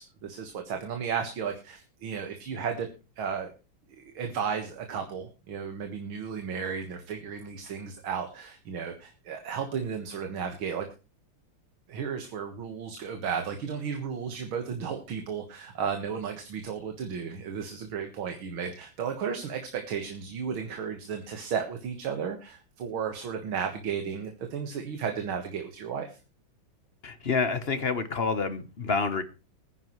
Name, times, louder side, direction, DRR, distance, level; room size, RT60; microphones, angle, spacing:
voice 1, 0.0-2.9 3.2-3.5 4.0-10.9 11.9-26.2, right 7 dB, 85° right, 4 dB, 2.3 m, -34 dB
voice 2, 27.0-29.2, left 4 dB, 40° left, 12 dB, 1.0 m, -28 dB
20.0 x 10.0 x 3.1 m, 0.31 s
omnidirectional pair, 2.2 m